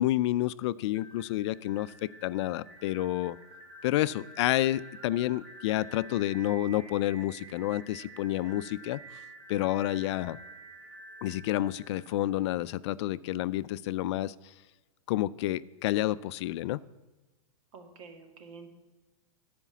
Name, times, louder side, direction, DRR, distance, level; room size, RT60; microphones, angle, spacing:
voice 1, 0.0-3.4 3.8-9.0 9.5-10.4 11.2-14.3 15.1-16.8, left 14 dB, 50° left, 17 dB, 0.4 m, -29 dB
sound 1, 0.9-12.7, right 2 dB, 40° right, 2.2 m, -50 dB
voice 2, 17.7-18.7, right 4 dB, 60° right, 4 dB, 2.2 m, -48 dB
13.0 x 5.1 x 8.3 m, 1.1 s
hypercardioid pair, 145°, 19 cm